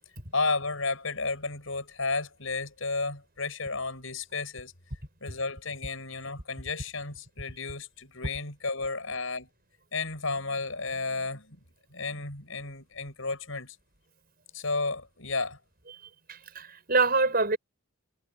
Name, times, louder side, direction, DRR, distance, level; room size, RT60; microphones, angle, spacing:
voice 1, 0.3-4.7 5.2-9.5 9.9-11.6 11.9-13.8 14.5-15.6, left 3 dB, 70° left, 6.7 m, -32 dB
voice 2, 16.3-17.6, right 3 dB, 45° right, 6.6 m, -25 dB
head